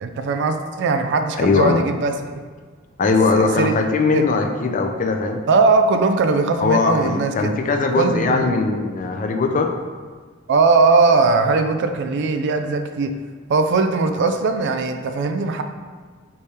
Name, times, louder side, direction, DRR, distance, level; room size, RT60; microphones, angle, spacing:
voice 1, 0.0-2.4 3.0-3.8 4.1-4.3 5.5-7.6 8.0-8.5 10.5-13.1 13.5-15.6, right 3 dB, 60° right, 7 dB, 0.3 m, -19 dB
voice 2, 1.4-1.8 3.0-5.4 6.6-9.7, left 3 dB, 40° left, 4 dB, 0.4 m, -20 dB
3.4 x 3.3 x 4.2 m, 1.5 s
head